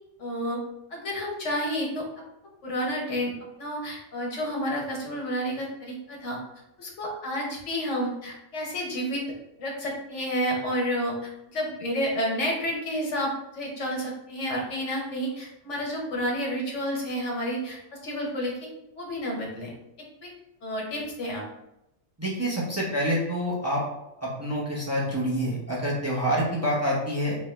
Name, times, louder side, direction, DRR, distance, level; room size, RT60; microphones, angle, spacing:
voice 1, 0.2-0.6 0.9-2.0 2.6-3.3 3.6-6.4 6.8-9.2 9.6-17.8 18.0-18.5 19.0-19.7 20.2-20.3 20.6-21.4, equal, 75° left, -2 dB, 1.3 m, -30 dB
voice 2, 22.2-23.8 24.2-27.4, equal, 15° right, -5 dB, 0.8 m, -27 dB
3.5 x 3.1 x 3.1 m, 0.87 s
omnidirectional pair, 1.2 m